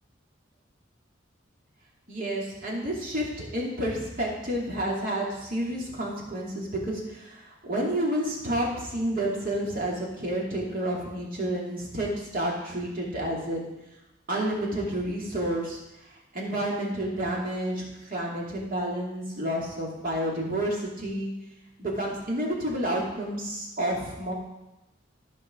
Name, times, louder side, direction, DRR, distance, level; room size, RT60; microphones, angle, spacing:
voice 1, 2.1-13.7 14.3-15.8 16.3-17.8 18.1-21.3 21.8-24.3, right 1 dB, 50° right, -3 dB, 2.5 m, -30 dB
12.5 x 5.3 x 4.9 m, 0.97 s
head